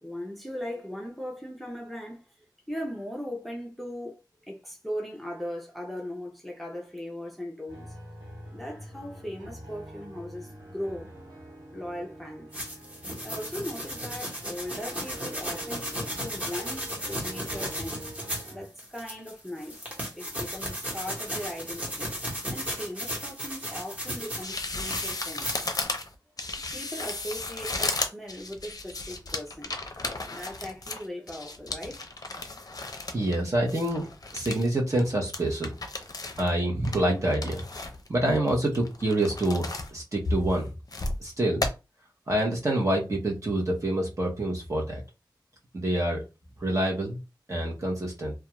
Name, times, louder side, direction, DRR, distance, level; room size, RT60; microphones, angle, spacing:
voice 1, 0.0-2.3 2.7-7.9 8.5-11.1 11.7-12.5 13.2-18.0 18.5-22.1 22.5-25.6 26.7-29.7 30.3-32.1 33.1-33.2, equal, ahead, 0.5 m, -38 dB
sound 1, 7.7-18.7, right 1 dB, 75° right, 1.2 m, -46 dB
sound 2, 12.5-18.5 18.8-24.6 24.9-25.8, equal, 20° right, 1.1 m, -35 dB
sound 3, 24.4-33.4 33.7-34.7 35.0-35.1 35.3-36.5 36.8-38.1 38.5-39.9 40.2-41.2 41.6-41.7, left 2 dB, 50° left, 0.5 m, -34 dB
voice 2, 33.1-34.1 34.3-35.7 36.4-37.6 38.1-40.7 41.2-41.7 42.3-45.0 45.7-46.2 46.6-47.2 47.5-48.3, right 1 dB, 40° right, 0.8 m, -26 dB
2.4 x 2.3 x 3.0 m
wide cardioid pair, 85°, 8 cm